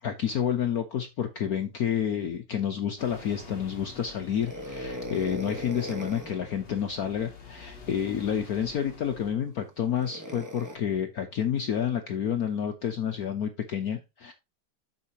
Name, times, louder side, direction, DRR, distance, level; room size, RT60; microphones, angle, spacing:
voice 1, 0.0-14.3, left 8 dB, 60° left, 7 dB, 1.1 m, -29 dB
sound 1, 3.0-9.3, left 4 dB, 35° left, 1.0 m, -49 dB
sound 2, 4.3-6.4 8.2-8.4 10.0-10.8, equal, 10° right, 0.9 m, -38 dB
8.3 x 6.6 x 2.9 m, 0.25 s
omnidirectional pair, 2.2 m